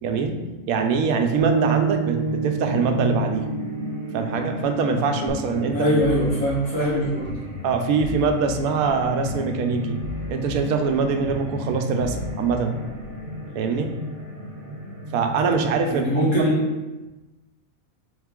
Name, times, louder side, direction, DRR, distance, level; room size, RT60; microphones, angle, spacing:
voice 1, 0.0-3.5 4.1-5.9 7.6-10.0 10.3-12.8 13.5-14.0 15.1-16.0, right 5 dB, 85° right, 6 dB, 1.0 m, -23 dB
sound 1, 1.4-5.5, right 7 dB, 65° right, 0.8 m, -28 dB
sound 2, 2.2-15.5, left 1 dB, 45° right, 0.9 m, -34 dB
sound 3, 5.3-13.3, left 1 dB, 30° right, 0.4 m, -38 dB
voice 2, 5.7-7.5 15.9-16.6, equal, 85° left, -8 dB, 2.0 m, -22 dB
3.9 x 3.6 x 3.6 m, 1.1 s
omnidirectional pair, 1.5 m